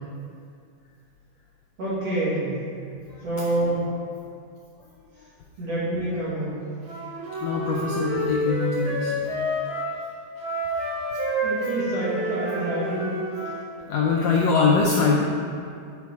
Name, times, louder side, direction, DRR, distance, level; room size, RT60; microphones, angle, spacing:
voice 1, 1.8-2.5 3.2-3.9 5.6-6.6 11.4-13.0 14.6-14.7, right 1 dB, 55° right, -10 dB, 3.1 m, -27 dB
Wind instrument woodwind instrument, 6.8-9.9 10.4-13.6, right 1 dB, 75° right, 0.8 m, -29 dB
voice 2, 7.4-9.1 13.9-15.2, left 4 dB, 80° left, -2 dB, 1.5 m, -22 dB
7.3 x 5.2 x 4.6 m, 2.3 s
omnidirectional pair, 3.7 m